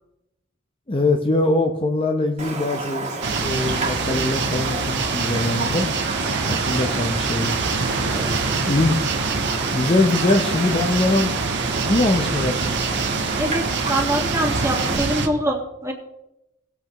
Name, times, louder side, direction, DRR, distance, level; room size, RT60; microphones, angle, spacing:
voice 1, 0.9-3.1 3.3-5.9 6.5-7.6 8.6-9.0 9.7-11.4 11.8-12.8, left 2 dB, 25° left, 4 dB, 0.7 m, -22 dB
Raindrop, 2.4-15.0, right 3 dB, 35° right, 1.9 m, -31 dB
sound 1, 3.2-15.3, right 4 dB, 55° right, 1.2 m, -25 dB
sound 2, 6.1-14.4, right 5 dB, 80° right, 0.8 m, -35 dB
voice 2, 8.1-8.5 13.4-15.9, right 1 dB, 15° right, 1 dB, 1.7 m, -25 dB
18.5 x 8.2 x 3.0 m, 0.92 s
head